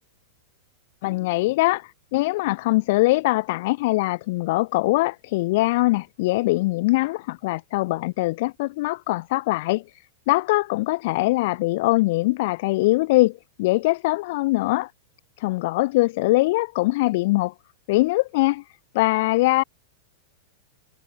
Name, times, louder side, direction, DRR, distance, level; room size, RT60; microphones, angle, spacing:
voice 1, 1.0-14.9 15.4-17.5 17.9-18.6 18.9-19.6, left 20 dB, 50° left, 0.9 m, -22 dB
supercardioid pair, 165°, 0 cm